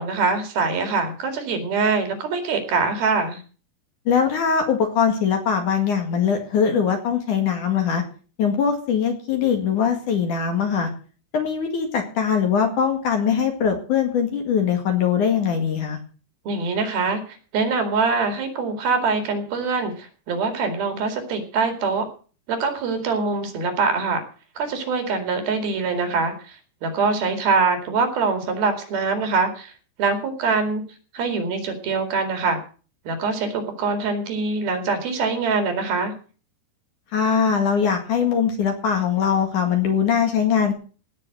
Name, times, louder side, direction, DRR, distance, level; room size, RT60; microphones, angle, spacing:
voice 1, 0.0-3.4 16.5-22.1 22.5-24.2 24.6-29.7 30.0-30.8 31.1-32.6 33.1-36.1, right 4 dB, 60° right, 6 dB, 4.0 m, -24 dB
voice 2, 4.1-8.0 8.4-10.9 11.3-16.0 37.1-40.7, left 7 dB, 55° left, 4 dB, 3.0 m, -21 dB
18.0 x 6.3 x 7.8 m, 0.39 s
omnidirectional pair, 5.1 m